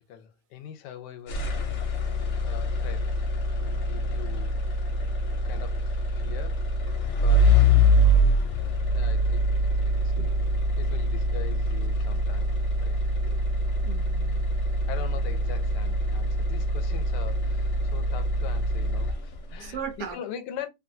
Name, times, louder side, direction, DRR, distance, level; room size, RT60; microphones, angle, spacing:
voice 1, 0.0-1.5 2.4-3.1 3.6-4.6 5.4-6.7 7.2-7.6 8.2-9.5 9.8-10.1 10.8-13.0 14.9-19.8 20.1-20.7, left 9 dB, 85° left, 1.2 m, -42 dB
sound 1, 1.3-19.5, equal, 60° left, 0.8 m, -24 dB
voice 2, 13.1-13.4 13.8-14.5 19.6-20.2, right 6 dB, 85° right, 1.3 m, -38 dB
2.8 x 2.5 x 2.6 m
omnidirectional pair, 1.8 m